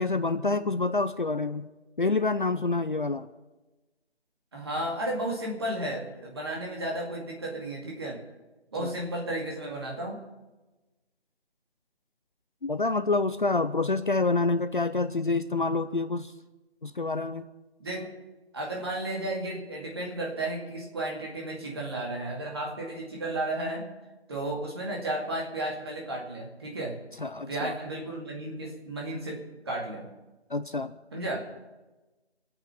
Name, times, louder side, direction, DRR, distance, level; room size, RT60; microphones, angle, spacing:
voice 1, 0.0-1.7 2.0-3.3 8.8-8.9 12.6-16.3 16.8-17.5 27.2-27.7 30.5-30.9, left 3 dB, 50° left, 11 dB, 0.7 m, -27 dB
voice 2, 4.5-8.2 8.7-10.3 17.8-18.1 18.5-23.9 24.3-27.0 27.5-30.1 31.1-31.5, right 1 dB, 25° right, -1 dB, 2.3 m, -33 dB
26.0 x 9.0 x 5.9 m, 1.1 s
figure-of-eight pair, 170°, 33 cm